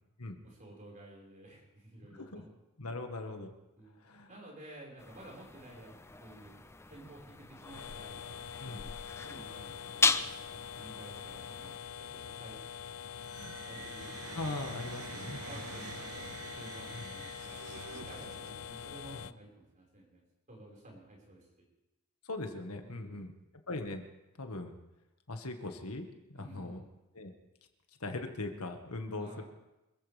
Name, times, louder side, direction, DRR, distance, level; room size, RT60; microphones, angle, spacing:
voice 1, 0.4-2.4 3.8-3.9 4.3-5.9 6.2-6.6 6.9-8.4 8.7-8.9 9.2-10.2 10.8-12.6 13.4-14.8 15.1-17.6 17.9-20.2 20.5-21.5 22.8-23.2 26.3-26.9 29.2-29.5, right 1 dB, 35° right, -2 dB, 5.4 m, -52 dB
voice 2, 2.1-2.5 2.8-3.5 4.0-4.3 8.6-8.8 14.3-15.4 16.9-17.1 19.1-19.2 22.2-23.3 23.7-24.0 24.4-24.8 25.3-26.8 27.1-27.3 28.0-29.4, left 2 dB, 85° left, 5 dB, 1.8 m, -40 dB
sound 1, 5.0-11.8, left 4 dB, 10° left, 0.5 m, -36 dB
sound 2, 7.6-19.3, left 7 dB, 70° left, 0.5 m, -44 dB
sound 3, 13.2-18.9, right 7 dB, 80° right, 0.6 m, -47 dB
26.5 x 15.0 x 3.5 m, 0.98 s
head